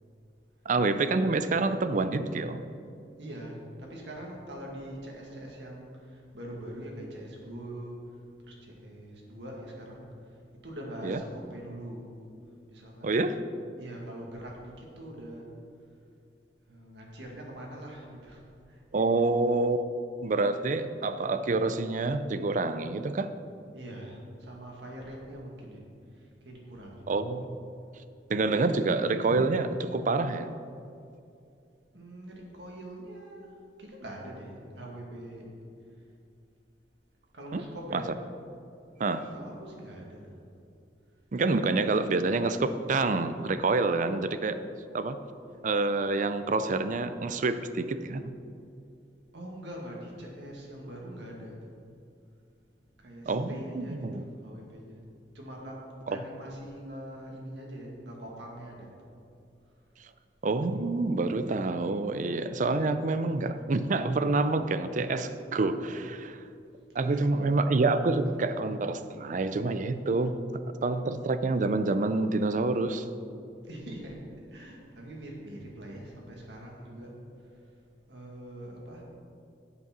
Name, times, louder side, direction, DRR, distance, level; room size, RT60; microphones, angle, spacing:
voice 1, 0.7-2.6 11.0-11.2 13.0-13.4 18.9-19.9 20.2-23.3 27.1-27.6 28.3-30.5 37.5-37.6 37.9-38.0 39.0-39.3 41.3-44.6 44.9-45.2 45.6-48.3 53.3-54.2 56.1-56.2 60.4-66.4 66.9-70.4 70.8-73.1, right 3 dB, 45° right, 11 dB, 0.5 m, -27 dB
voice 2, 3.2-8.2 8.4-10.4 10.6-12.1 12.7-13.3 13.8-15.5 16.7-19.2 23.7-25.8 26.1-27.2 31.9-35.5 37.3-38.1 39.3-40.2 49.3-51.6 53.0-55.0 55.3-58.9 66.9-67.6 73.6-74.2 74.5-77.1 77.4-77.6 78.1-79.0, right 1 dB, 85° right, -1 dB, 2.1 m, -43 dB
8.3 x 7.4 x 6.0 m, 2.5 s
head